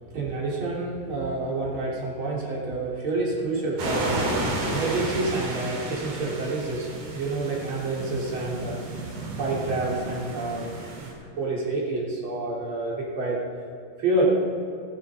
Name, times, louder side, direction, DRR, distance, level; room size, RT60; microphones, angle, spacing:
voice 1, 0.0-13.4 14.0-14.2, right 2 dB, 30° right, -5 dB, 3.7 m, -28 dB
sound 1, 3.8-11.1, right 1 dB, 55° right, 4.5 m, -33 dB
15.5 x 13.0 x 5.0 m, 2.5 s
omnidirectional pair, 4.9 m